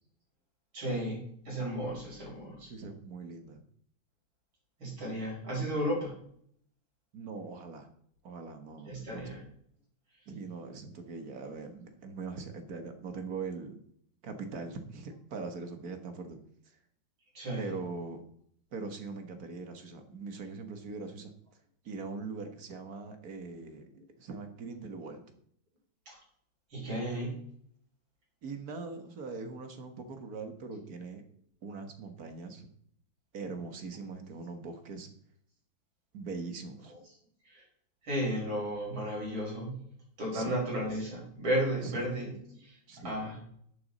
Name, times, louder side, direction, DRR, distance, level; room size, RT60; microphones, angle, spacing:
voice 1, 0.7-1.2 1.5-2.7 4.8-6.1 8.9-9.4 17.3-17.7 26.1-26.2 26.7-27.4 37.5-37.6 38.0-39.7 40.2-42.3 42.6-42.7 43.0-43.4, equal, 80° right, -4 dB, 6.4 m, -33 dB
voice 2, 2.7-3.6 7.1-7.9 8.2-9.3 10.3-13.8 14.2-16.4 17.6-18.2 18.7-21.3 21.9-23.9 24.2-25.2 28.4-31.2 31.6-32.7 33.3-35.1 36.1-36.9 40.3-40.6 41.8-42.1 42.9-43.2, right 4 dB, 50° right, 7 dB, 1.7 m, -41 dB
10.5 x 9.1 x 4.2 m, 0.65 s
omnidirectional pair, 2.2 m